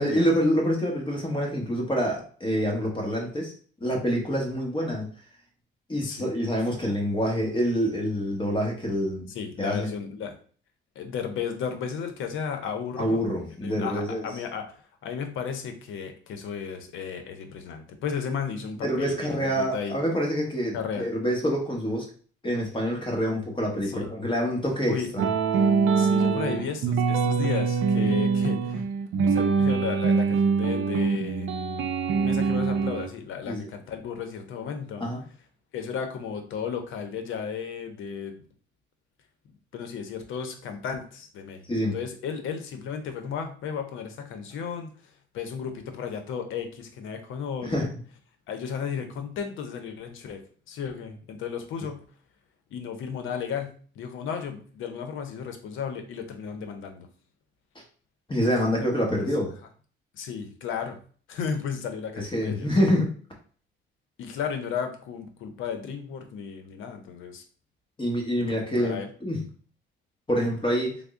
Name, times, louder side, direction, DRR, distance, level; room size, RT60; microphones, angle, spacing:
voice 1, 0.0-3.5 3.8-5.1 5.9-9.3 9.6-9.9 13.0-14.3 18.8-22.1 22.4-25.3 33.5-33.6 35.0-35.2 41.7-42.0 47.6-47.9 58.3-59.5 62.1-63.1 68.0-69.4 70.3-71.0, equal, 25° left, 0 dB, 1.0 m, -26 dB
voice 2, 9.3-10.3 11.0-13.2 13.6-14.6 15.0-20.0 20.7-21.1 23.8-24.1 24.9-25.1 26.0-28.8 29.2-31.5 32.1-35.1 35.7-38.4 39.7-41.7 41.9-44.9 45.3-47.9 48.5-50.4 50.7-52.0 52.7-57.1 60.1-61.0 61.3-62.7 64.2-67.4 68.4-69.1, left 6 dB, 85° left, 6 dB, 0.7 m, -34 dB
sound 1, 25.2-33.1, right 5 dB, 75° right, 0.5 m, -24 dB
3.5 x 2.0 x 3.6 m, 0.43 s
cardioid pair, 90°, 20 cm